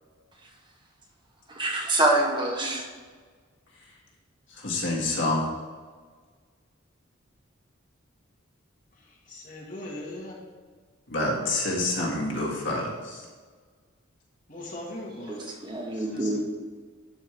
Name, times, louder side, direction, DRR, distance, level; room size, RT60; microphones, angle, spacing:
voice 1, 1.5-2.8 15.3-16.4, right 2 dB, 25° right, 1 dB, 0.8 m, -26 dB
voice 2, 4.6-5.4 11.1-13.2, left 2 dB, 65° left, -3 dB, 1.8 m, -27 dB
voice 3, 9.0-10.4 14.5-15.4 15.9-16.4, left 1 dB, 40° left, -3 dB, 1.6 m, -40 dB
11.5 x 4.5 x 3.3 m, 1.5 s
head